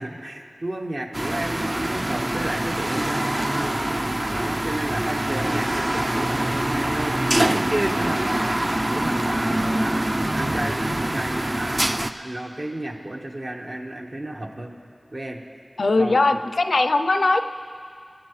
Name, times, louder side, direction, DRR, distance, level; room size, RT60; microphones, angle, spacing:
voice 1, 0.0-4.0 4.3-8.6 8.9-11.9 12.1-14.7 15.1-15.4 16.0-16.4, right 1 dB, 60° right, 0 dB, 1.3 m, -31 dB
sound 1, 1.1-12.1, right 1 dB, 30° right, 0.4 m, -24 dB
voice 2, 15.8-17.5, left 2 dB, 90° left, 8 dB, 0.4 m, -20 dB
25.0 x 8.8 x 3.2 m, 2.2 s
wide cardioid pair, 60°, 0 cm